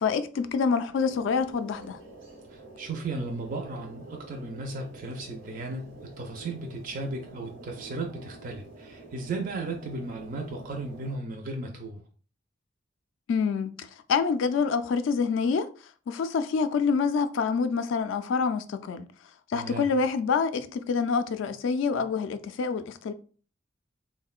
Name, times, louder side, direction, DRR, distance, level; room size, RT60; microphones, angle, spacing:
voice 1, 0.0-2.0 13.3-15.7 16.1-19.1 19.5-23.1, left 5 dB, 70° left, 0.3 m, -26 dB
sound 1, 0.9-11.2, right 2 dB, 90° right, 1.0 m, -48 dB
voice 2, 2.5-12.0 19.5-19.9, right 2 dB, 45° right, 0.4 m, -35 dB
3.6 x 2.1 x 2.3 m
head